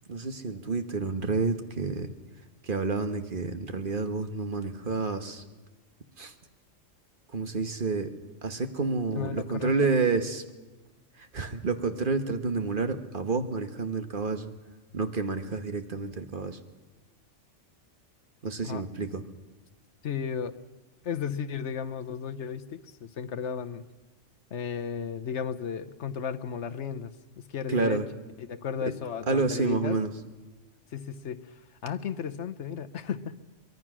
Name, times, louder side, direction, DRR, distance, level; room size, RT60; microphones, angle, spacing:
voice 1, 0.1-2.1 2.6-5.4 6.2-6.3 7.3-8.1 8.4-10.4 11.2-14.5 14.9-16.6 18.4-19.2 27.7-28.1 29.3-30.1, right 4 dB, 45° right, 8 dB, 1.4 m, -29 dB
voice 2, 9.1-9.7 18.6-18.8 20.0-20.6 21.0-23.8 24.5-28.0 28.4-30.0 30.9-31.4 31.8-33.4, left 7 dB, 65° left, 10 dB, 1.2 m, -34 dB
24.0 x 21.5 x 6.2 m, 1.2 s
omnidirectional pair, 1.3 m